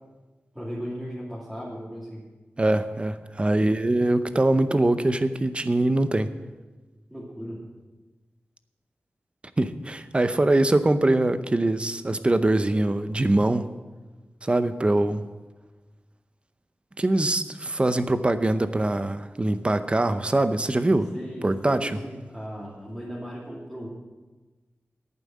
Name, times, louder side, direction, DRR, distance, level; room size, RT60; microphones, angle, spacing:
voice 1, 0.5-2.2 7.1-7.6 21.1-23.9, equal, 5° right, -7 dB, 2.5 m, -36 dB
voice 2, 2.6-6.3 9.6-13.7 14.4-15.2 17.0-21.1 21.4-22.0, right 2 dB, 25° right, 11 dB, 0.7 m, -23 dB
11.0 x 9.1 x 7.5 m, 1.2 s
wide cardioid pair, 110°, 4 cm